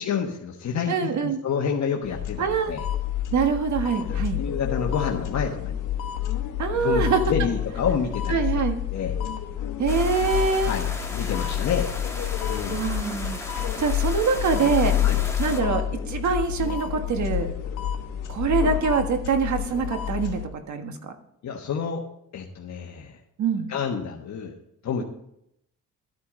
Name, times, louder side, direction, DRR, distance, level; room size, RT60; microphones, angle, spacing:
voice 1, 0.0-2.8 4.0-5.8 6.8-8.6 8.9-9.1 10.6-11.9 12.5-12.8 15.0-15.2 21.4-22.0 22.3-23.2 23.7-24.5 24.8-25.0, left 6 dB, 60° left, 0 dB, 1.3 m, -29 dB
voice 2, 0.9-1.4 2.4-2.7 3.3-4.4 6.6-7.2 8.3-8.8 9.8-10.7 12.7-14.9 15.4-17.5 18.3-20.4 20.7-21.1 23.4-23.7, right 5 dB, 65° right, 6 dB, 1.6 m, -24 dB
sound 1, 2.0-20.5, left 10 dB, 90° left, 1.2 m, -28 dB
sound 2, 9.9-15.6, left 2 dB, 10° left, 2.0 m, -36 dB
13.0 x 9.5 x 3.8 m, 0.77 s
cardioid pair, 110°, 31 cm